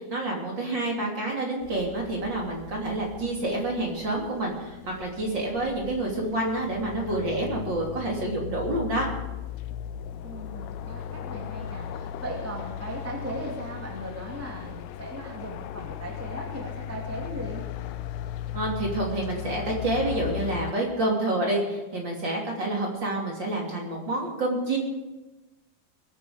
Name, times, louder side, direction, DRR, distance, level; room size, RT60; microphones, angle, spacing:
voice 1, 0.0-9.0 18.5-24.8, right 2 dB, 30° right, -2 dB, 3.2 m, -28 dB
sound 1, 1.6-20.7, left 10 dB, 85° left, 1.8 m, -37 dB
voice 2, 10.2-17.6, right 1 dB, 5° right, -2 dB, 1.7 m, -38 dB
22.0 x 9.3 x 5.2 m, 1.1 s
omnidirectional pair, 4.3 m